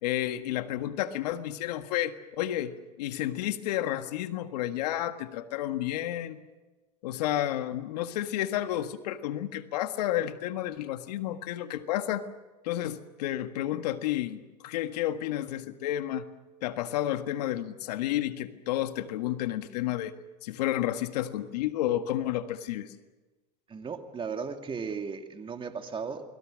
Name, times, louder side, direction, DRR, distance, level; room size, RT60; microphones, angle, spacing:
voice 1, 0.0-6.4 7.0-12.2 12.6-16.2 16.6-20.1 20.4-22.9, left 13 dB, 75° left, 9 dB, 1.7 m, -31 dB
voice 2, 23.7-26.2, right 5 dB, 25° right, 6 dB, 2.6 m, -36 dB
29.0 x 21.0 x 6.4 m, 1.2 s
hypercardioid pair, 100°, 21 cm